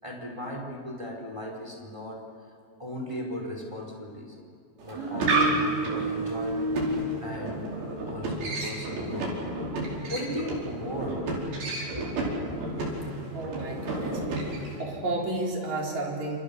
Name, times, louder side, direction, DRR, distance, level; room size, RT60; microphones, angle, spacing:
voice 1, 0.0-2.2 2.8-4.4 4.8-6.8 7.2-7.7 8.1-9.3 10.1-11.2 11.9-12.3, equal, 5° right, 1 dB, 4.0 m, -37 dB
sound 1, 4.8-14.8, right 2 dB, 65° right, 6.8 m, -30 dB
voice 2, 13.3-14.5 14.8-16.4, right 2 dB, 45° right, -1 dB, 5.0 m, -32 dB
29.0 x 29.0 x 7.0 m, 2.4 s
omnidirectional pair, 4.8 m